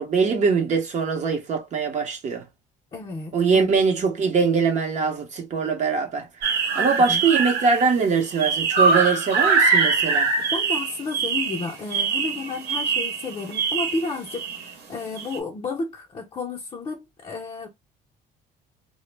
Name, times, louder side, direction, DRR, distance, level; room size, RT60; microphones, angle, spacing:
voice 1, 0.0-2.4 3.3-6.3 6.8-10.3, right 5 dB, 45° right, 0.7 m, -22 dB
voice 2, 2.9-3.7 6.7-7.2 10.4-17.7, left 3 dB, 30° left, 0.5 m, -32 dB
sound 1, 6.4-7.9 8.2-14.7 15.2-15.4, right 4 dB, 75° right, 0.9 m, -23 dB
2.0 x 2.0 x 3.2 m
cardioid pair, 110°, 17 cm